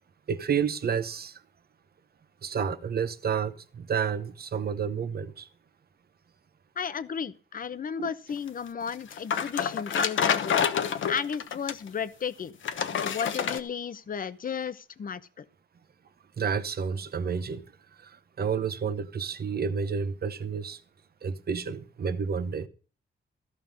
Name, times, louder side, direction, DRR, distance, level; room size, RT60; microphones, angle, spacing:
voice 1, 0.3-1.4 2.4-5.5 8.0-8.1 16.4-17.6 18.0-20.8 21.2-22.7, right 6 dB, 50° right, 1.0 m, -30 dB
voice 2, 6.8-10.6 11.1-12.6 12.9-15.4, left 7 dB, 45° left, 0.8 m, -34 dB
sound 1, 8.9-11.9 12.6-13.6, left 7 dB, 80° left, 1.0 m, -27 dB
14.5 x 5.5 x 7.5 m
wide cardioid pair, 125°, 20 cm